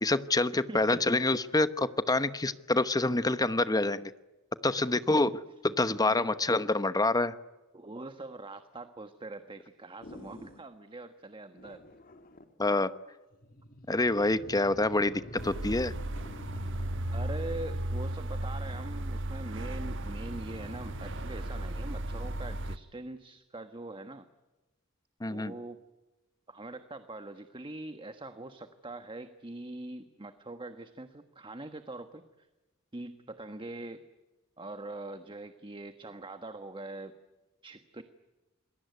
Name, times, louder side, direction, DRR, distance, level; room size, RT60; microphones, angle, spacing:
voice 1, 0.0-4.1 4.6-5.3 5.8-7.3 12.6-12.9 13.9-15.9 25.2-25.5, left 2 dB, 20° left, 13 dB, 1.0 m, -27 dB
voice 2, 7.7-11.8 17.1-24.3 25.3-25.8 26.5-32.5 32.9-34.0 34.6-37.1 37.6-38.0, right 2 dB, 25° right, 8 dB, 1.4 m, -43 dB
sound 1, 10.0-10.7 11.6-12.5 13.3-18.2 19.6-21.3, left 1 dB, 45° left, 2.4 m, -48 dB
sound 2, 15.4-22.8, right 1 dB, 60° right, 1.3 m, -35 dB
28.0 x 22.0 x 9.5 m, 1.1 s
head